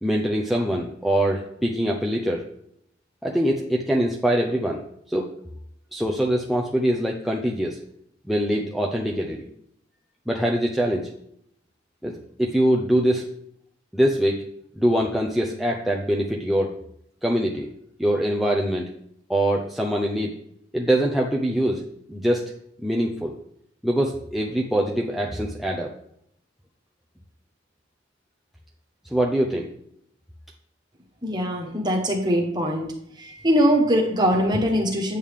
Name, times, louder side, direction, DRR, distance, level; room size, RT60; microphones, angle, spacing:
voice 1, 0.0-2.4 3.2-4.8 5.1-5.3 5.9-7.8 8.3-9.5 10.3-11.1 12.0-13.3 13.9-14.4 14.7-16.7 17.2-17.7 18.0-18.9 19.3-20.3 20.7-21.8 22.1-22.5 22.8-23.4 23.8-25.9 29.1-29.7, right 1 dB, ahead, -1 dB, 0.6 m, -23 dB
voice 2, 31.2-32.9 33.1-35.2, equal, 20° right, 1 dB, 1.4 m, -22 dB
9.0 x 6.5 x 3.7 m, 0.71 s
head